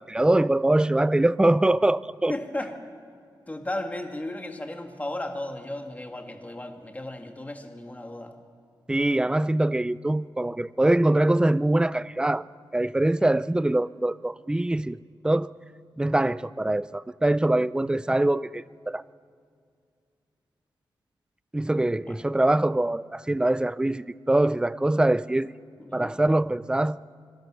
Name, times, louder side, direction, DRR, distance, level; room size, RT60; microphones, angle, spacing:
voice 1, 0.0-2.3 8.9-12.4 12.7-15.0 15.2-15.5 16.0-19.0 21.5-25.5 25.9-27.0, right 1 dB, 10° right, 18 dB, 0.4 m, -23 dB
voice 2, 2.3-2.7 3.5-8.3 13.2-13.3 22.1-22.2 25.8-26.2, left 1 dB, 20° left, 5 dB, 2.1 m, -35 dB
25.5 x 22.0 x 6.3 m, 2.3 s
wide cardioid pair, 125°, 8 cm